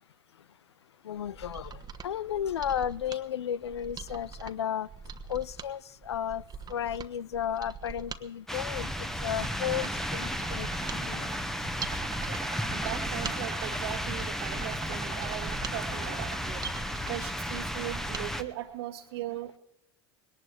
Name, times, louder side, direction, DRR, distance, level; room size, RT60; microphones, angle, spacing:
voice 1, 1.0-4.9 5.3-6.4 6.7-10.7 10.9-11.3, left 9 dB, 85° left, 0.5 m, -33 dB
Mechanisms, 1.2-18.3 18.6-18.7, right 6 dB, 30° right, 1.2 m, -43 dB
sound 1, 8.5-18.4, equal, 5° left, 1.2 m, -34 dB
sound 2, 8.8-16.6, right 13 dB, 50° right, 1.1 m, -45 dB
voice 2, 12.7-16.4 17.1-19.6, right 14 dB, 70° right, 1.5 m, -39 dB
20.5 x 18.0 x 3.4 m
hypercardioid pair, 75°, 14 cm